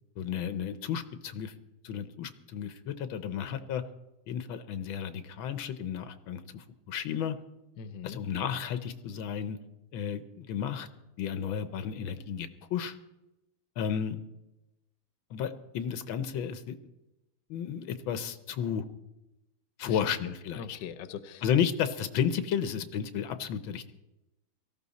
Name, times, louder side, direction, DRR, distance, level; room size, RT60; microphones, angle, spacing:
voice 1, 0.2-1.5 1.8-3.8 4.3-7.4 8.0-9.6 9.9-10.9 11.2-13.0 13.8-14.2 15.3-16.8 17.5-18.8 19.8-20.8 21.4-23.9, left 8 dB, 85° left, 11 dB, 1.6 m, -32 dB
voice 2, 7.8-8.2 19.8-20.0 20.6-21.4, left 7 dB, 70° left, 12 dB, 1.4 m, -41 dB
18.0 x 14.0 x 4.1 m, 0.96 s
omnidirectional pair, 2.2 m